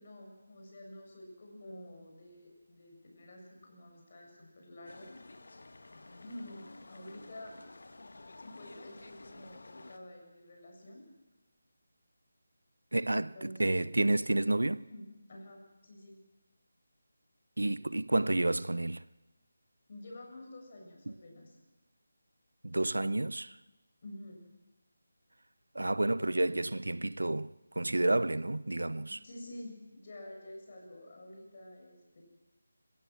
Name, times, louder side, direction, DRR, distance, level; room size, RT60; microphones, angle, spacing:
voice 1, 0.0-5.2 6.2-7.6 8.4-11.0 13.1-13.6 14.9-16.2 19.9-21.6 24.0-24.4 29.2-32.2, left 1 dB, 45° left, 7.7 m, -49 dB
sound 1, 4.9-10.0, left 2 dB, 65° left, 2.0 m, -52 dB
voice 2, 12.9-13.3 13.6-14.9 17.6-19.0 21.1-21.2 22.6-23.6 25.7-29.2, right 2 dB, 85° right, 0.7 m, -30 dB
26.5 x 16.0 x 7.7 m
figure-of-eight pair, 160°, 0 cm